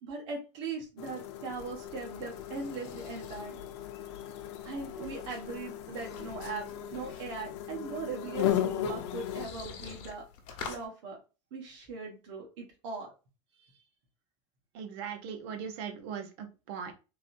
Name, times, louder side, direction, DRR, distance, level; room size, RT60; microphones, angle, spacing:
voice 1, 0.0-3.6 4.6-10.2 10.7-11.2 11.5-13.1, right 4 dB, 85° right, -2 dB, 1.4 m, -40 dB
sound 1, 1.0-9.5, left 10 dB, 75° left, 0.8 m, -36 dB
sound 2, 1.3-10.9, left 6 dB, 50° left, 1.2 m, -49 dB
voice 2, 14.7-16.9, right 7 dB, 60° right, 5 dB, 0.8 m, -39 dB
3.9 x 2.7 x 2.6 m, 0.31 s
cardioid pair, 175°, 15 cm